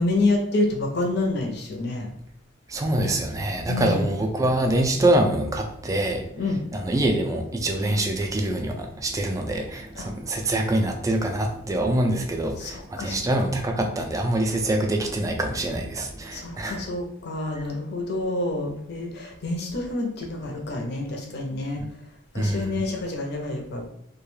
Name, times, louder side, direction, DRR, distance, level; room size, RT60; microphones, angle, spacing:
voice 1, 0.0-2.1 3.7-4.1 6.4-6.6 10.0-10.1 12.6-13.5 16.3-21.8 22.3-23.9, left 2 dB, 55° left, 2 dB, 0.6 m, -28 dB
voice 2, 2.7-6.3 6.7-16.9 22.4-22.8, right 1 dB, 15° right, 3 dB, 0.3 m, -25 dB
2.3 x 2.2 x 3.1 m, 0.70 s
head